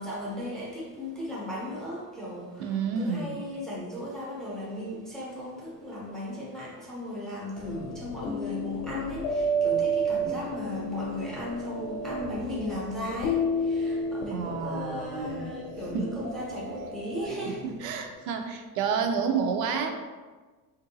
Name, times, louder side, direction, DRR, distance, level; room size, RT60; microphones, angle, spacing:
voice 1, 0.0-17.7, left 1 dB, ahead, -6 dB, 0.4 m, -36 dB
voice 2, 2.6-3.3 14.3-15.5 15.9-16.1 17.6-19.9, right 6 dB, 80° right, 5 dB, 0.5 m, -29 dB
sound 1, 7.6-18.0, right 1 dB, 70° left, 0.5 m, -32 dB
3.7 x 2.6 x 2.6 m, 1.3 s
cardioid pair, 175°, 37 cm